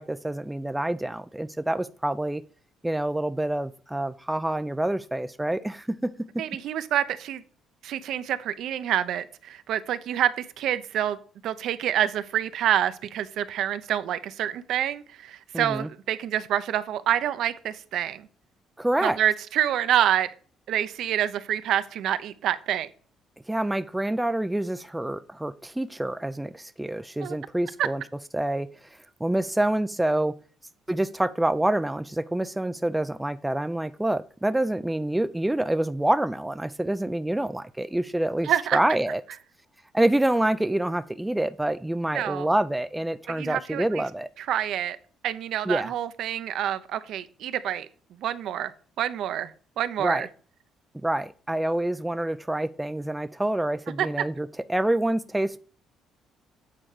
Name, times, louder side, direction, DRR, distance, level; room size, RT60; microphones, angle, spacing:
voice 1, 0.0-2.4 2.8-6.1 15.5-15.9 18.8-19.2 23.5-28.0 28.3-28.7 29.2-30.4 30.9-39.2 39.9-44.3 45.7-45.9 50.0-50.3 51.0-55.6, right 1 dB, 5° right, 0.4 m, -27 dB
voice 2, 6.4-7.4 7.8-11.2 11.4-18.3 19.0-20.3 20.7-22.9 27.2-27.3 27.8-27.9 38.4-38.8 42.1-42.5 43.3-44.0 44.4-45.0 45.2-47.9 48.2-48.7 49.0-49.5 49.8-50.3 54.0-54.1, right 11 dB, 70° right, 0.7 m, -27 dB
8.7 x 4.4 x 4.9 m
cardioid pair, 135°, 0 cm